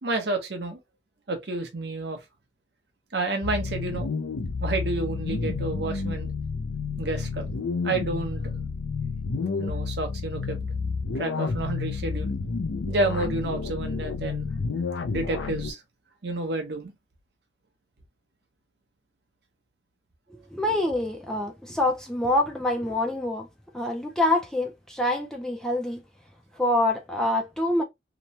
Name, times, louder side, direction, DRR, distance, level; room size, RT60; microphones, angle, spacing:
voice 1, 0.0-0.8 1.3-2.2 3.1-4.1 4.6-6.3 7.0-7.5 7.8-8.4 9.6-10.6 11.1-12.3 12.9-14.5 15.1-15.8 16.2-16.9, right 2 dB, 60° right, 0.8 m, -30 dB
sound 1, 3.4-15.7, left 4 dB, 90° left, 0.4 m, -30 dB
voice 2, 20.3-23.5 23.7-26.0 26.6-27.8, left 1 dB, 5° left, 0.4 m, -26 dB
3.0 x 2.1 x 2.7 m
head